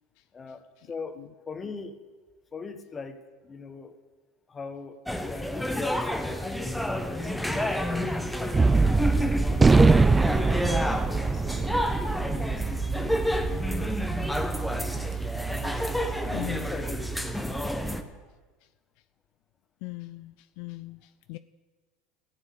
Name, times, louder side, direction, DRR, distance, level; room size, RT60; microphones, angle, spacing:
voice 1, 0.3-2.0 2.5-4.0 4.5-8.0 8.8-9.9 10.2-15.1 15.5-18.3, left 4 dB, 25° left, 9 dB, 1.2 m, -42 dB
sound 1, 5.1-18.0, equal, 5° left, 1.0 m, -29 dB
Gunshot gunfire, 8.5-15.1, right 4 dB, 15° right, 0.4 m, -23 dB
voice 2, 16.3-16.7 19.8-21.4, left 22 dB, 70° left, 12 dB, 0.4 m, -39 dB
14.0 x 7.4 x 8.5 m, 1.3 s
supercardioid pair, 105°, 0 cm